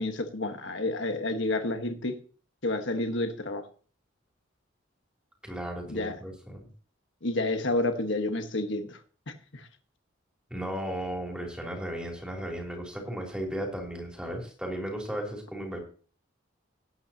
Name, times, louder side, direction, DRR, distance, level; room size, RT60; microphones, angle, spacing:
voice 1, 0.0-2.2 2.6-3.6 5.9-6.2 7.2-9.0 9.5-9.7, left 2 dB, 65° left, 6 dB, 1.4 m, -29 dB
voice 2, 5.4-6.7 10.5-15.8, equal, 5° right, 0 dB, 3.2 m, -35 dB
18.5 x 8.7 x 2.9 m, 0.40 s
head